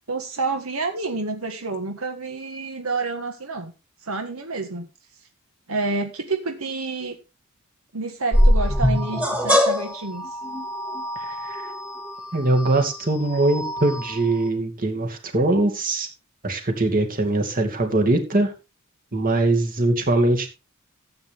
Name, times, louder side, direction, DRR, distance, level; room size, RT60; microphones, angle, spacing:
voice 1, 0.1-3.7 4.0-4.9 5.7-7.2 7.9-10.4, right 3 dB, 80° right, 5 dB, 1.6 m, -29 dB
sound 1, 8.3-14.5, equal, 5° right, 2.4 m, -23 dB
voice 2, 11.2-11.7 12.3-16.1 16.4-18.5 19.1-20.5, right 2 dB, 40° right, 4 dB, 2.5 m, -22 dB
14.0 x 8.7 x 3.6 m, 0.29 s
head